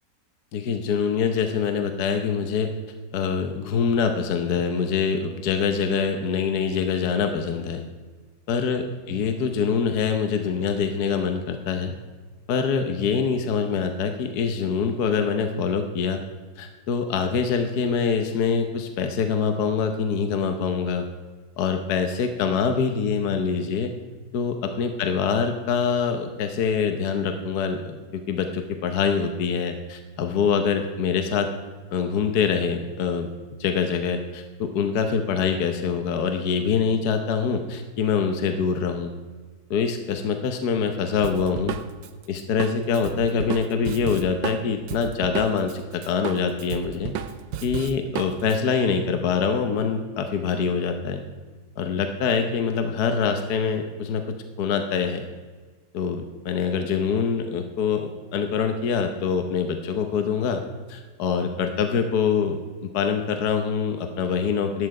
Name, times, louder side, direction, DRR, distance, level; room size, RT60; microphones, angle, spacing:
voice 1, 0.5-2.7 3.1-7.8 8.5-11.9 12.5-16.2 16.6-21.0 21.6-23.9 24.3-31.5 31.9-33.3 33.6-39.1 39.7-41.8 42.3-47.1 47.6-51.2 51.8-55.3 55.9-60.6 60.9-62.6 62.9-64.9, left 6 dB, 65° left, 6 dB, 1.4 m, -24 dB
Drum kit, 41.2-45.8 46.0-48.6, right 9 dB, 90° right, 1.5 m, -33 dB
14.0 x 9.8 x 4.8 m, 1.4 s
omnidirectional pair, 1.9 m